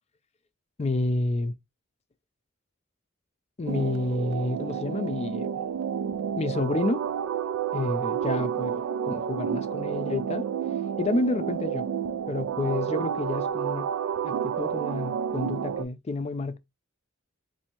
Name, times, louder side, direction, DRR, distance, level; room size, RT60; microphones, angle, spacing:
voice 1, 0.8-1.5 3.6-5.6 6.4-7.1 7.7-10.5 11.0-11.9 12.3-13.9 14.2-16.6, left 2 dB, 30° left, 0.4 m, -29 dB
sound 1, 3.7-15.8, right 8 dB, 90° right, 0.3 m, -30 dB
4.2 x 2.7 x 2.9 m
head